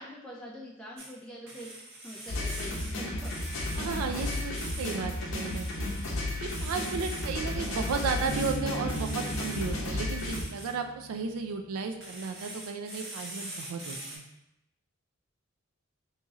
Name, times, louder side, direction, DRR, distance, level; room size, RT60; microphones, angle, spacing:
voice 1, 0.0-3.3, equal, 5° left, -5 dB, 0.3 m, -45 dB
sound 1, 1.0-1.2 1.5-2.9 3.2-5.0 5.3-7.3 7.6-8.6 8.9-9.8 10.2-10.7 12.0-14.2, right 1 dB, 60° right, 1.2 m, -43 dB
sound 2, 2.3-10.4, left 1 dB, 65° left, 0.7 m, -33 dB
voice 2, 3.8-5.9 6.4-14.2, right 5 dB, 85° right, 6 dB, 0.4 m, -34 dB
Bass guitar, 8.3-12.0, right 2 dB, 30° right, 1.1 m, -39 dB
2.9 x 2.8 x 3.5 m, 0.86 s
head